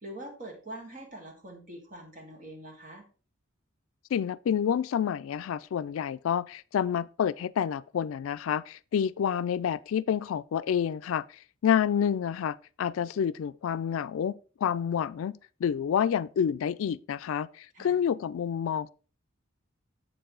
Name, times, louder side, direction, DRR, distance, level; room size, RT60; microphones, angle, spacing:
voice 1, 0.0-3.0 17.7-18.0, right 1 dB, 40° right, 2.0 m, -44 dB
voice 2, 4.1-11.2 11.6-18.9, left 8 dB, 80° left, 0.3 m, -28 dB
7.5 x 6.7 x 3.8 m
head